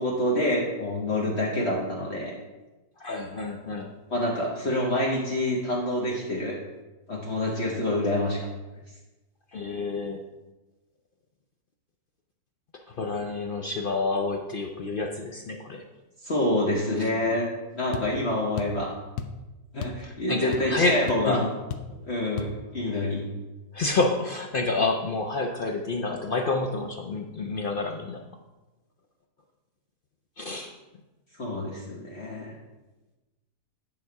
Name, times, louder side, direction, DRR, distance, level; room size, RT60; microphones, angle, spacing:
voice 1, 0.0-2.3 4.1-6.6 7.1-8.5 16.2-17.5 17.7-18.9 19.7-21.4 21.9-23.3 31.3-32.6, left 1 dB, 45° left, -3 dB, 1.4 m, -27 dB
voice 2, 3.0-3.9 9.5-10.2 12.9-15.9 17.0-17.1 20.0-21.5 22.9-23.1 23.7-28.2 30.4-30.7, left 3 dB, 60° left, 3 dB, 0.5 m, -29 dB
sound 1, 17.9-18.1 18.6-18.8 19.2-19.4 19.8-20.1 20.3-20.8 21.1-21.2 21.7-21.9 22.4-22.6, left 7 dB, 75° left, 1.2 m, -34 dB
9.4 x 5.9 x 4.7 m, 1.1 s
omnidirectional pair, 1.7 m